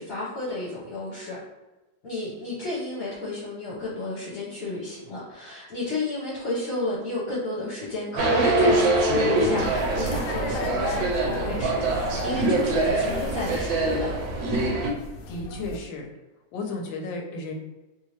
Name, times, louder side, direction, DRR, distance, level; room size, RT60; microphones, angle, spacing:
voice 1, 0.0-1.4 2.0-14.1, left 2 dB, 55° left, -8 dB, 1.3 m, -32 dB
sound 1, 8.2-14.9, right 2 dB, 85° right, 1.4 m, -24 dB
sound 2, 9.6-15.8, right 1 dB, 70° left, 1.0 m, -35 dB
voice 2, 15.3-16.1 16.5-17.5, left 3 dB, 85° left, 1 dB, 1.3 m, -33 dB
3.2 x 2.7 x 2.9 m, 1.1 s
omnidirectional pair, 2.0 m